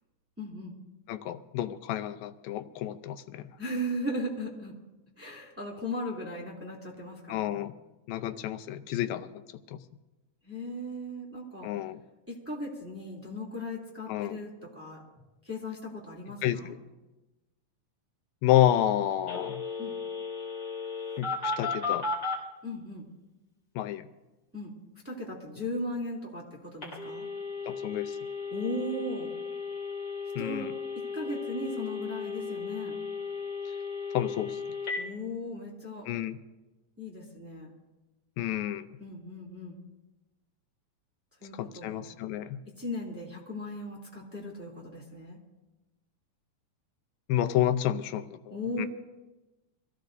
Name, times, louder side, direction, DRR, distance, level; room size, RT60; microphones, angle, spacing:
voice 1, 0.4-0.7 3.6-4.7 5.2-7.5 10.4-11.7 12.3-15.0 15.4-16.7 19.8-20.0 22.6-23.0 24.5-24.7 25.0-27.3 28.5-29.3 30.4-30.7 31.1-32.9 35.0-36.1 37.0-37.7 39.0-39.8 41.4-42.0 42.8-45.4 48.5-48.9, left 1 dB, 5° right, -3 dB, 2.3 m, -37 dB
voice 2, 1.1-3.5 7.3-7.7 8.1-9.3 9.7-9.8 11.6-12.0 14.1-14.4 16.4-16.8 18.4-19.6 21.2-22.1 23.8-24.1 27.7-28.2 30.4-30.7 33.7-33.8 34.1-34.6 36.1-36.4 38.4-38.9 41.5-42.6 47.3-48.9, left 12 dB, 85° left, 9 dB, 2.5 m, -29 dB
Telephone, 19.3-22.4 26.8-35.0, left 5 dB, 30° left, 3.4 m, -35 dB
25.0 x 16.0 x 2.6 m, 1.1 s
omnidirectional pair, 4.1 m